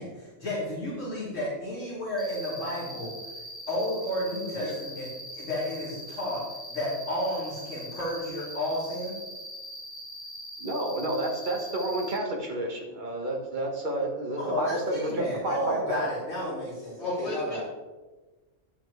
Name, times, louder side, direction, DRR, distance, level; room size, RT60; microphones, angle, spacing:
voice 1, 0.0-3.1 3.7-5.1 5.3-6.4 6.7-9.2 14.4-17.6, left 1 dB, 80° left, -11 dB, 3.6 m, -32 dB
Cricket, 2.2-12.2, equal, ahead, 2.2 m, -42 dB
voice 2, 10.6-16.1, right 1 dB, 40° right, 0 dB, 1.6 m, -30 dB
voice 3, 17.0-17.6, left 1 dB, 60° left, -5 dB, 3.0 m, -33 dB
10.0 x 8.3 x 3.2 m, 1.2 s
omnidirectional pair, 1.3 m